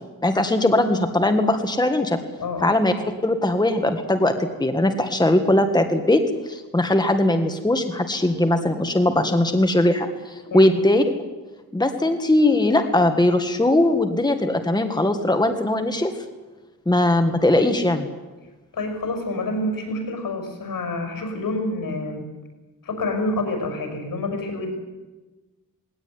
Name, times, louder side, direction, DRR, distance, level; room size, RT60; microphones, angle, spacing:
voice 1, 0.2-2.2 2.6-2.9 3.2-11.0 11.7-16.1 16.8-18.1, left 1 dB, 10° left, 6 dB, 1.7 m, -20 dB
voice 2, 2.4-2.7 10.4-10.7 18.7-22.3 22.8-24.7, left 2 dB, 75° left, 5 dB, 5.9 m, -28 dB
19.5 x 17.5 x 9.7 m, 1.2 s
wide cardioid pair, 105°, 33 cm